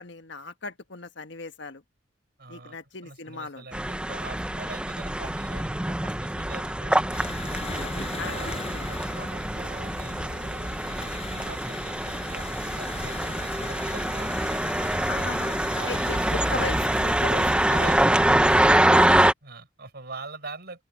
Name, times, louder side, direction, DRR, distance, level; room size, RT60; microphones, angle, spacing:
voice 1, 0.0-1.8 2.5-3.6 8.2-8.4 15.1-17.7 18.9-19.1, left 4 dB, 65° left, 1.4 m, -37 dB
voice 2, 2.4-2.8 3.0-7.3 7.9-14.6 15.1-15.4 15.7-16.1 17.2-18.0 19.4-20.8, right 3 dB, 60° right, 4.9 m, -43 dB
sound 1, 3.7-19.3, right 1 dB, 5° right, 0.7 m, -25 dB
sound 2, 7.1-18.9, left 2 dB, 35° left, 6.7 m, -38 dB
open air
head